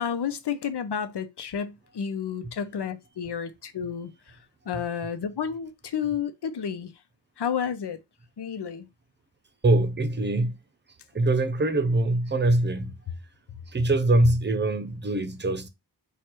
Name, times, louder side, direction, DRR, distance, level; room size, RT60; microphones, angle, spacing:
voice 1, 0.0-4.1 4.7-6.9 7.4-8.0 8.4-8.9, left 7 dB, 85° left, 0.8 m, -31 dB
voice 2, 9.6-10.5 11.1-13.0 13.7-15.7, right 2 dB, 30° right, 0.6 m, -23 dB
4.7 x 2.4 x 4.5 m
wide cardioid pair, 105°, 39 cm